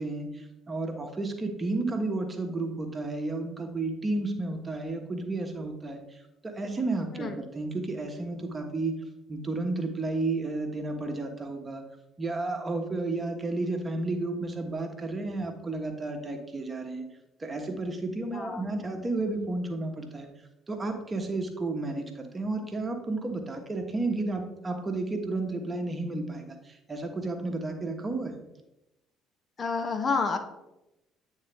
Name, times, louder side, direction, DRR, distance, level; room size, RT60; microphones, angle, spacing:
voice 1, 0.0-6.0 6.4-8.9 9.3-11.8 12.2-17.1 17.4-20.3 20.7-28.4, right 2 dB, 25° right, 4 dB, 1.1 m, -32 dB
voice 2, 29.6-30.4, left 4 dB, 35° left, 7 dB, 0.6 m, -29 dB
8.6 x 3.7 x 3.4 m, 0.93 s
figure-of-eight pair, 50°, 0 cm